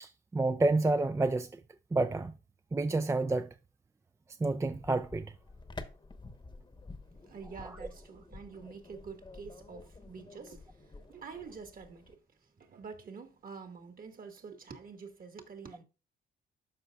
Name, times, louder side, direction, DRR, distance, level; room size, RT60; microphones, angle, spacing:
voice 1, 0.0-1.5 1.9-2.3 2.7-3.5 4.4-5.3 7.6-7.7, right 2 dB, 15° right, 0.4 m, -29 dB
sound 1, 4.5-12.1, left 3 dB, 25° left, 1.0 m, -50 dB
voice 2, 7.1-12.2 12.6-15.8, right 5 dB, 45° right, 1.7 m, -47 dB
13.0 x 5.0 x 2.3 m
cardioid pair, 90°, 20 cm